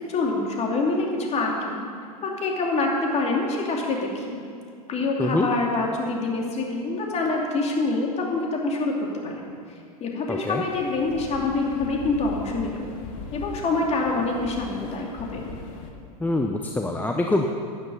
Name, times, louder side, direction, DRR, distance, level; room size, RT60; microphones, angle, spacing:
voice 1, 0.0-1.8 2.2-4.4 4.9-9.5 10.0-12.8 13.3-15.4, left 3 dB, 30° left, 0 dB, 2.7 m, -26 dB
voice 2, 10.3-10.6 16.2-17.5, left 2 dB, 10° left, 2 dB, 0.7 m, -24 dB
sound 1, 10.7-15.9, left 5 dB, 55° left, 1.7 m, -39 dB
12.0 x 11.0 x 5.5 m, 2.3 s
hypercardioid pair, 95°, 20 cm